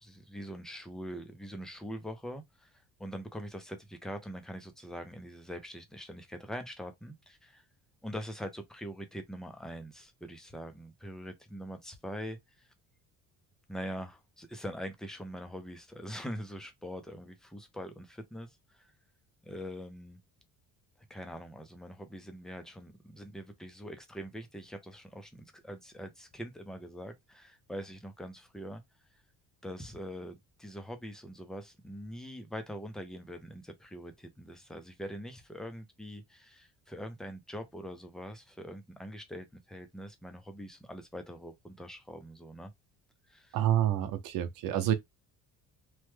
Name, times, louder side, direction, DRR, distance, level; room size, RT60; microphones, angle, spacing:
voice 1, 0.0-7.6 8.0-12.7 13.7-18.9 19.4-20.2 21.1-28.8 29.6-42.7 43.3-43.6, equal, ahead, 0.4 m, -43 dB
voice 2, 43.5-44.9, right 11 dB, 75° right, 0.8 m, -28 dB
3.1 x 2.2 x 3.1 m
cardioid pair, 160°, 34 cm